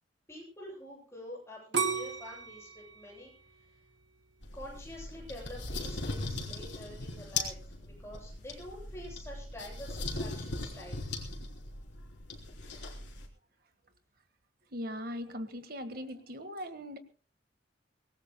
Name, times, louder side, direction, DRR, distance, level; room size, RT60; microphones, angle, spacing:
voice 1, 0.3-3.7 4.5-11.1, left 1 dB, 15° left, -3 dB, 7.7 m, -47 dB
sound 1, 1.7-4.6 5.2-5.6, right 6 dB, 75° right, 2.1 m, -35 dB
sound 2, 4.4-13.3, left 3 dB, 70° left, 3.7 m, -39 dB
voice 2, 14.7-17.0, equal, 50° right, 9 dB, 1.5 m, -39 dB
24.5 x 19.0 x 2.2 m, 0.37 s
head